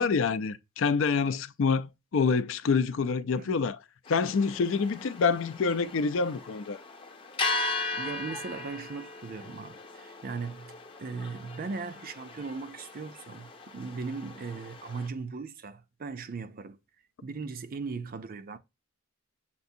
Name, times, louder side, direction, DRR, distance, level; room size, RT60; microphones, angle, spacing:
voice 1, 0.0-3.8 4.1-6.8, left 5 dB, 65° left, 0.4 m, -27 dB
sound 1, 4.1-15.1, left 3 dB, 25° left, 0.6 m, -38 dB
voice 2, 7.9-16.8 17.2-18.6, right 4 dB, 45° right, 0.5 m, -38 dB
6.9 x 2.5 x 2.7 m
head